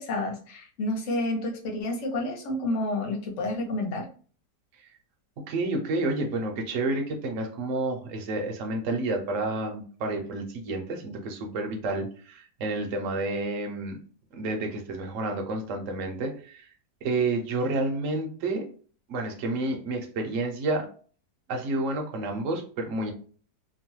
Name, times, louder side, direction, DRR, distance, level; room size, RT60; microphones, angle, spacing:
voice 1, 0.0-4.1, left 1 dB, 55° left, 1 dB, 0.9 m, -30 dB
voice 2, 5.5-14.0 14.3-16.7 17.0-18.7 19.1-20.9 21.5-23.1, right 2 dB, 60° right, 3 dB, 0.9 m, -30 dB
3.0 x 2.2 x 3.0 m, 0.41 s
omnidirectional pair, 1.8 m